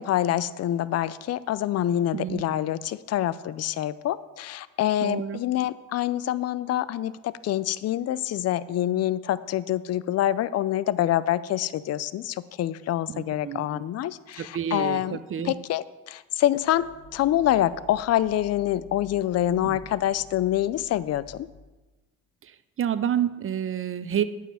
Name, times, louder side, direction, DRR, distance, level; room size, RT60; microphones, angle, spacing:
voice 1, 0.0-15.2 15.4-16.9 17.1-21.5, left 12 dB, 55° left, 17 dB, 0.5 m, -26 dB
voice 2, 2.1-2.5 5.0-5.4 13.1-13.8 14.4-15.5 19.6-19.8 22.4-22.5 22.8-24.2, right 9 dB, 45° right, 13 dB, 0.7 m, -29 dB
sound 1, 16.4-21.9, left 2 dB, 25° left, 3.3 m, -50 dB
9.1 x 5.6 x 7.7 m, 1.2 s
cardioid pair, 90°, 30 cm